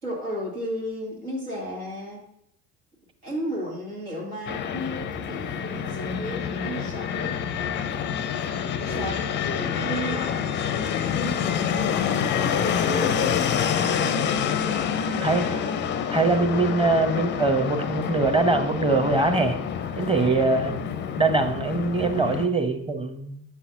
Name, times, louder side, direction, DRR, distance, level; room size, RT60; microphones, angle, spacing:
voice 1, 0.0-2.2 3.2-7.3 8.8-10.6 11.1-15.7, equal, 80° right, -3 dB, 2.1 m, -34 dB
Fixed-wing aircraft airplane, 4.5-22.5, left 8 dB, 25° left, 0.4 m, -27 dB
sound 1, 5.0-11.4, left 1 dB, 30° right, 1.5 m, -39 dB
voice 2, 16.1-19.6 19.9-20.8 21.2-23.4, right 3 dB, 10° right, 7 dB, 0.8 m, -22 dB
8.1 x 5.7 x 2.8 m, 0.74 s
figure-of-eight pair, 60°, 44 cm